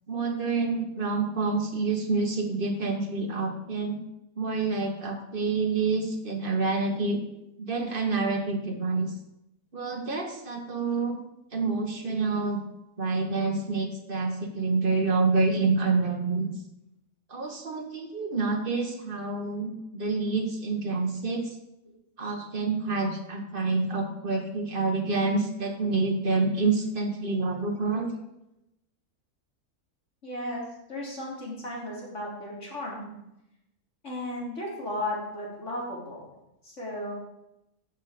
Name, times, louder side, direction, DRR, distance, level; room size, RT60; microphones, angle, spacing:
voice 1, 0.1-4.0 4.4-7.2 7.6-9.1 9.7-11.2 11.5-12.6 13.0-16.5 17.3-21.5 22.2-28.1, right 3 dB, 35° right, 3 dB, 1.6 m, -27 dB
voice 2, 30.2-30.6 30.9-33.1 34.0-36.3 36.6-37.1, left 1 dB, 50° left, -4 dB, 3.7 m, -35 dB
14.0 x 6.7 x 5.1 m, 0.87 s
omnidirectional pair, 1.6 m